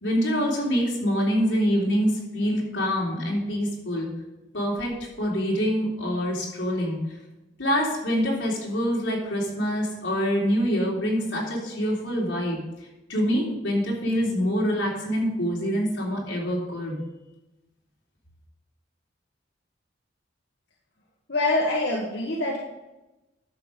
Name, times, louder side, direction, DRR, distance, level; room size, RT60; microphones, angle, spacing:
voice 1, 0.0-4.1 4.5-7.0 7.6-12.6 13.1-17.0, equal, 90° left, -3 dB, 3.4 m, -25 dB
voice 2, 21.3-22.6, left 2 dB, 65° left, -3 dB, 1.4 m, -25 dB
11.5 x 6.8 x 5.2 m, 1.0 s
head